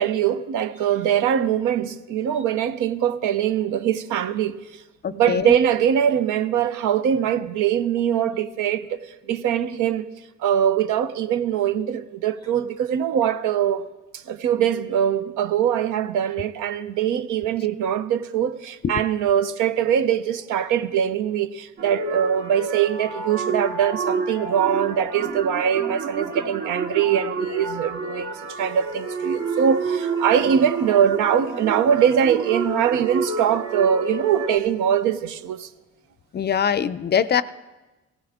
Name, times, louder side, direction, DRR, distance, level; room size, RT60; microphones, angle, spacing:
voice 1, 0.0-4.8 5.1-10.1 10.4-13.9 14.1-35.7, right 9 dB, 85° right, 0.6 m, -22 dB
voice 2, 5.0-5.5 18.8-18.9 36.3-37.4, left 8 dB, 35° left, 0.4 m, -22 dB
sound 1, 21.8-34.6, right 4 dB, 65° right, 2.3 m, -29 dB
17.0 x 15.5 x 3.6 m
cardioid pair, 90°, 30 cm